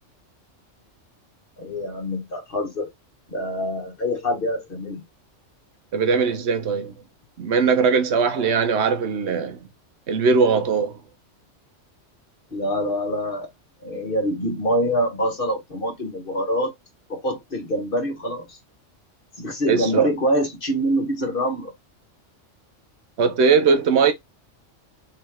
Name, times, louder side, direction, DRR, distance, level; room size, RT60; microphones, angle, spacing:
voice 1, 1.6-2.9 3.3-5.0 12.5-13.5 13.8-16.7 17.1-18.6 19.4-21.7, equal, 45° left, 1.4 m, -25 dB
voice 2, 5.9-6.9 7.4-9.6 10.1-11.0 19.7-20.1 23.2-24.1, right 5 dB, 65° right, 1.0 m, -20 dB
3.8 x 3.1 x 3.5 m
omnidirectional pair, 1.3 m